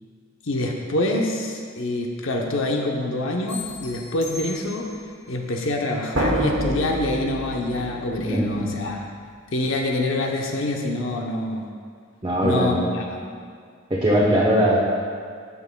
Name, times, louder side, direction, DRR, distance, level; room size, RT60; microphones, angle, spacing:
voice 1, 0.4-4.9 5.3-9.0 9.5-11.7 12.4-13.2, left 1 dB, 80° left, 1 dB, 0.7 m, -26 dB
sound 1, 3.5-5.1, left 4 dB, 55° left, 1.4 m, -38 dB
sound 2, 3.6-3.8 6.2-8.8, equal, 85° right, 0.9 m, -27 dB
voice 2, 8.2-8.7 12.2-12.7 13.9-14.8, equal, 25° right, -6 dB, 0.8 m, -20 dB
14.0 x 5.5 x 2.2 m, 2.1 s
head